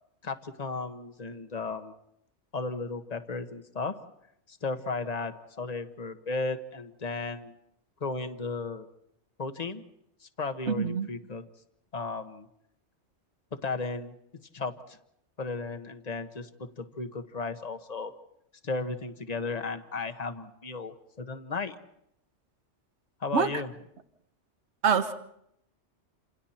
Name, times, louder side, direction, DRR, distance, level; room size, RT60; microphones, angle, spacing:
voice 1, 0.2-1.9 2.5-4.0 4.5-7.5 8.0-8.9 9.4-9.8 10.4-11.5 11.9-12.5 13.5-14.1 14.5-15.0 15.4-18.1 18.6-21.8 23.2-23.7, left 3 dB, 35° left, 8 dB, 1.4 m, -35 dB
voice 2, 10.7-11.1 23.3-23.5 24.8-25.1, right 6 dB, 70° right, 8 dB, 1.5 m, -25 dB
28.5 x 28.0 x 4.4 m, 0.76 s
omnidirectional pair, 1.2 m